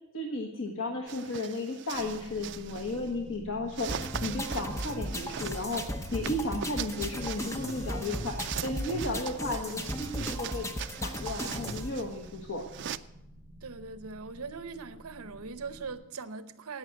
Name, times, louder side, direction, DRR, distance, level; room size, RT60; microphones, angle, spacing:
voice 1, 0.1-10.7 11.0-12.6, left 2 dB, 60° left, 1 dB, 1.2 m, -34 dB
sound 1, 1.1-3.1 3.7-13.0, right 9 dB, 50° right, 0.4 m, -41 dB
sound 2, 1.9-15.9, equal, 10° right, 4.4 m, -50 dB
sound 3, 3.9-11.9, left 1 dB, 15° left, 0.7 m, -36 dB
voice 2, 13.6-16.8, right 4 dB, 80° right, 12 dB, 0.8 m, -41 dB
16.0 x 5.9 x 7.6 m, 0.92 s
head